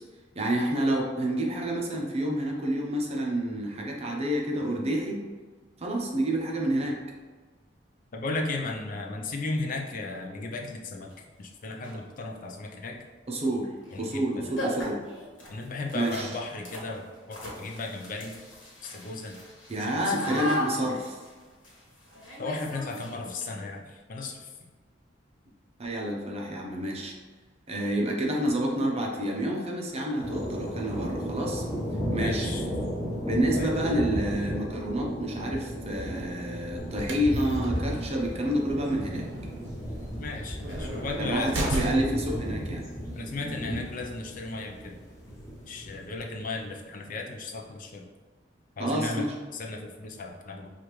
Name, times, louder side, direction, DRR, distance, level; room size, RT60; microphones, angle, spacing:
voice 1, 0.3-5.2 5.8-7.0 13.3-13.7 14.0-15.0 15.9-16.3 19.7-21.2 25.8-27.1 27.7-31.6 32.1-32.5 33.2-39.3 41.2-42.9 48.8-49.3, right 1 dB, 35° right, -1 dB, 0.7 m, -28 dB
voice 2, 8.1-11.1 11.4-13.1 13.9-14.5 15.5-18.4 18.8-19.4 19.8-20.4 22.4-24.5 32.2-32.6 33.5-33.7 40.2-41.8 43.2-45.0 45.7-48.1 48.8-50.7, left 3 dB, 45° left, 1 dB, 0.5 m, -35 dB
sound 1, 11.1-11.2 11.7-12.1 13.8-14.0 14.2-14.3 14.6-23.4, equal, 90° left, 1.2 m, -38 dB
sound 2, 30.2-46.3, equal, 15° left, 0.9 m, -34 dB
sound 3, 36.8-42.3, right 1 dB, 75° right, 0.6 m, -36 dB
5.0 x 2.5 x 3.0 m, 1.4 s
head